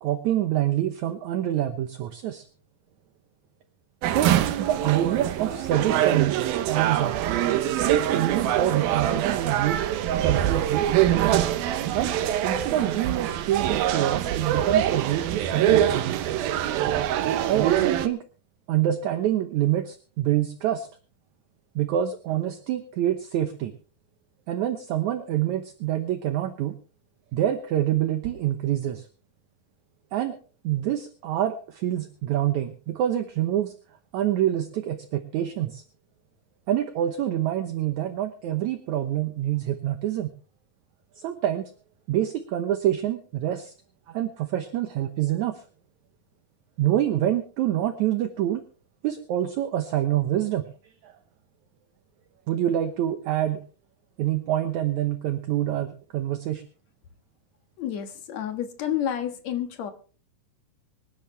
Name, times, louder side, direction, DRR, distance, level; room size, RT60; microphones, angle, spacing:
voice 1, 0.0-2.5 4.1-7.2 7.8-9.9 10.2-10.9 11.9-12.1 12.4-16.3 17.5-18.2 18.7-20.9 21.8-23.7 24.5-26.8 27.3-29.1 30.1-30.4 30.6-33.7 34.1-35.8 36.7-40.3 41.2-41.7 42.1-43.7 44.1-45.6 46.8-48.6 49.0-50.7 51.0-51.1 52.5-53.6 54.2-56.6, right 12 dB, 70° right, 8 dB, 2.0 m, -26 dB
sound 1, 4.0-18.1, right 11 dB, 85° right, 2.8 m, -24 dB
voice 2, 57.8-59.9, left 10 dB, 60° left, 7 dB, 2.3 m, -30 dB
25.5 x 10.5 x 3.3 m, 0.38 s
omnidirectional pair, 4.2 m